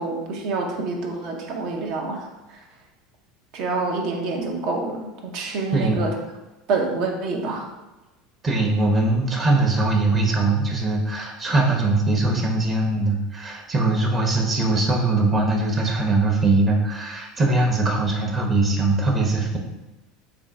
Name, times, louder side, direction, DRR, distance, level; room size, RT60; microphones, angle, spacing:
voice 1, 0.0-2.3 3.5-6.2 6.7-7.6, right 3 dB, 60° right, 2 dB, 0.7 m, -27 dB
voice 2, 5.7-6.0 8.4-19.6, right 2 dB, 30° right, 0 dB, 0.8 m, -21 dB
3.7 x 2.3 x 3.6 m, 1.1 s
hypercardioid pair, 85°, 0 cm